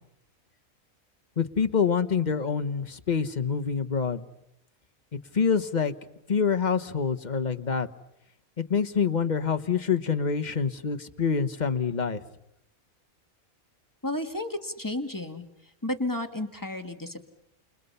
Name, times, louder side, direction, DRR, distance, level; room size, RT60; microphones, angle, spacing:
voice 1, 1.4-4.3 5.3-5.9 6.3-7.9 8.6-12.2, left 6 dB, 35° left, 9 dB, 1.2 m, -26 dB
voice 2, 14.0-17.2, left 1 dB, 15° left, 5 dB, 2.0 m, -32 dB
29.5 x 29.5 x 5.6 m, 0.79 s
omnidirectional pair, 1.5 m